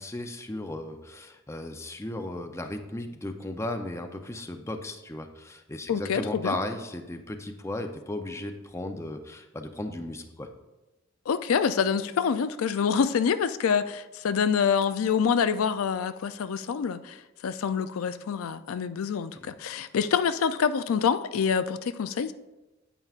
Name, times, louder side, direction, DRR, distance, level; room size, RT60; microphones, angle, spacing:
voice 1, 0.0-10.5, left 1 dB, 15° left, 5 dB, 0.5 m, -35 dB
voice 2, 5.9-6.6 11.3-22.3, left 6 dB, 90° left, 12 dB, 0.4 m, -26 dB
9.0 x 9.0 x 2.4 m, 1.0 s
head